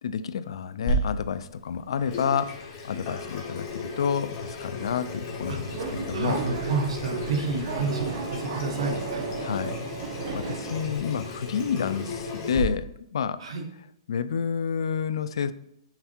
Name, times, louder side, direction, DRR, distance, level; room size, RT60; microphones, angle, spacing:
voice 1, 0.0-6.4 9.4-9.8 10.3-13.4 14.1-15.5, left 7 dB, 70° left, 14 dB, 0.4 m, -29 dB
Water tap faucet / Sink (filling or washing), 0.9-12.6, left 1 dB, 25° left, 1.3 m, -34 dB
Subway metro underground, 5.3-11.0, right 5 dB, 40° right, 0.8 m, -34 dB
voice 2, 6.1-9.2 13.4-13.6, right 4 dB, 85° right, 3 dB, 1.2 m, -30 dB
5.8 x 4.4 x 4.3 m, 0.75 s
hypercardioid pair, 175°, 3 cm